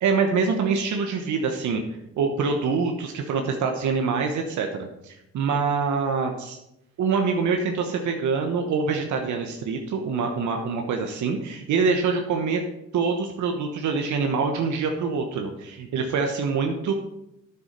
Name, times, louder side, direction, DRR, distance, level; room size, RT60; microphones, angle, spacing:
voice 1, 0.0-1.8 2.2-6.6 7.0-12.6 12.9-16.9, right 5 dB, 70° right, 3 dB, 1.1 m, -25 dB
9.7 x 7.0 x 5.2 m, 0.86 s
cardioid pair, 90°, 30 cm